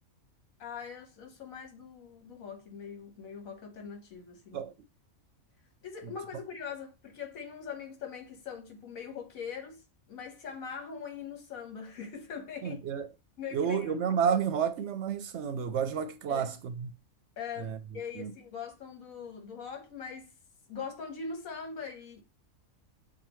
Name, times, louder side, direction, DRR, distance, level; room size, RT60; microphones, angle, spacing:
voice 1, 0.6-4.6 5.8-12.8 13.4-14.0 16.3-16.5 17.4-20.3 20.7-22.2, left 6 dB, 80° left, 1.5 m, -42 dB
voice 2, 12.6-13.1 13.5-16.9 17.6-17.8 18.2-18.3, right 7 dB, 65° right, 0.8 m, -30 dB
7.0 x 2.4 x 3.0 m
omnidirectional pair, 1.4 m